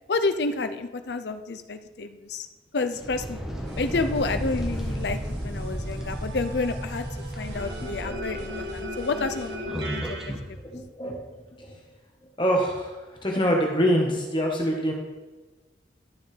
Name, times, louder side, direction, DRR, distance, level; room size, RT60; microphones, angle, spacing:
voice 1, 0.1-2.5 2.7-3.4 3.8-7.0 7.4-10.6, left 3 dB, 75° left, 9 dB, 0.6 m, -30 dB
sound 1, 2.9-10.5, equal, 5° right, 1.1 m, -34 dB
sound 2, 3.6-10.3, equal, 75° right, 1.6 m, -36 dB
voice 2, 10.7-11.2 11.6-11.8 12.4-12.9 13.2-14.9, equal, 30° left, 0 dB, 1.2 m, -24 dB
12.0 x 7.2 x 3.3 m, 1.2 s
head